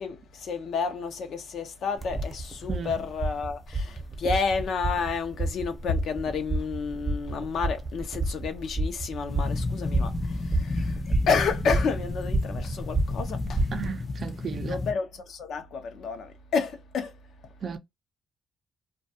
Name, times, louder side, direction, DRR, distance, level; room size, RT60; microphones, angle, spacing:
voice 1, 0.0-13.7 14.7-17.1, left 5 dB, 70° left, 0.6 m, -30 dB
sound 1, 2.0-13.9, right 2 dB, 20° right, 0.7 m, -30 dB
voice 2, 2.7-3.0 13.7-14.8 17.6-17.8, right 6 dB, 50° right, 0.5 m, -35 dB
sound 2, 9.3-14.9, left 3 dB, 25° left, 0.6 m, -32 dB
2.3 x 2.2 x 2.7 m
cardioid pair, 90°, 0 cm